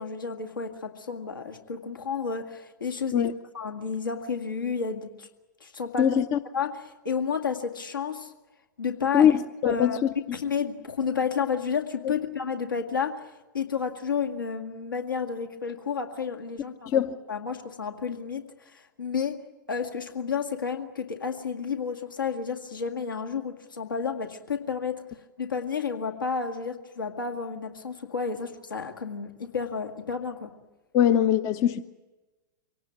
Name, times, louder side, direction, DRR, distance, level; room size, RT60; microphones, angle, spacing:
voice 1, 0.0-3.3 3.5-5.3 5.6-6.2 6.5-8.3 8.8-9.4 9.6-10.0 10.3-13.2 13.5-17.0 17.3-19.4 19.7-25.0 25.4-30.5, left 6 dB, 75° left, 2.1 m, -31 dB
voice 2, 6.0-6.4 9.1-10.1 12.0-12.1 16.9-17.1 30.9-31.8, left 9 dB, 30° left, 0.7 m, -22 dB
24.5 x 18.0 x 9.4 m
figure-of-eight pair, 100°, 11 cm